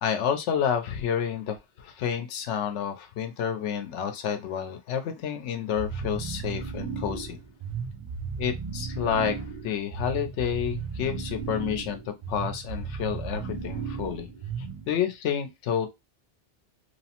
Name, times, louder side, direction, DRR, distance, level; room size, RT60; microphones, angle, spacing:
voice 1, 0.0-7.4 8.4-14.3 14.9-15.9, left 8 dB, 80° left, 0.9 m, -29 dB
sound 1, 5.8-15.0, right 5 dB, 45° right, 0.4 m, -35 dB
3.0 x 2.1 x 2.8 m
omnidirectional pair, 1.2 m